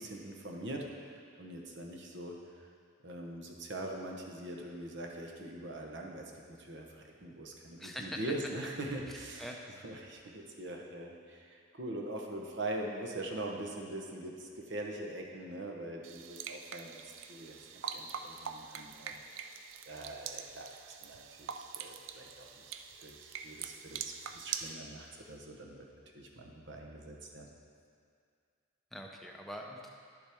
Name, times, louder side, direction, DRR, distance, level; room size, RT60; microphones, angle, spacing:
voice 1, 0.0-2.7 3.0-9.5 9.8-17.0 17.3-17.6 17.9-19.5 19.9-20.7 21.0-25.9 26.1-27.5, right 1 dB, 60° right, 0 dB, 1.0 m, -43 dB
voice 2, 7.8-8.2 9.1-9.5 28.9-29.9, equal, ahead, 0 dB, 0.6 m, -44 dB
sound 1, 16.0-24.7, right 7 dB, 75° right, 0.4 m, -44 dB
10.5 x 7.2 x 3.5 m, 2.3 s
head